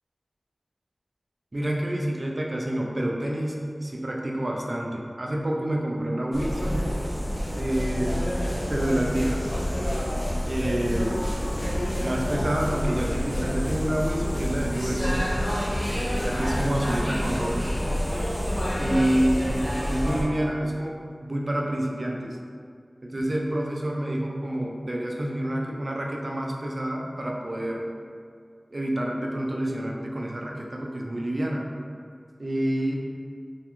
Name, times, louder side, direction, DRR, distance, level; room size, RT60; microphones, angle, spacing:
voice 1, 1.5-6.8 7.5-8.2 8.7-9.6 10.4-11.2 12.0-15.4 16.2-17.6 18.8-22.4 23.0-27.9 28.7-31.7 32.4-33.0, right 1 dB, 50° right, -1 dB, 0.4 m, -28 dB
sound 1, 6.3-20.2, equal, 40° left, 0.6 m, -28 dB
2.4 x 2.2 x 2.9 m, 2.1 s
wide cardioid pair, 50°, 0 cm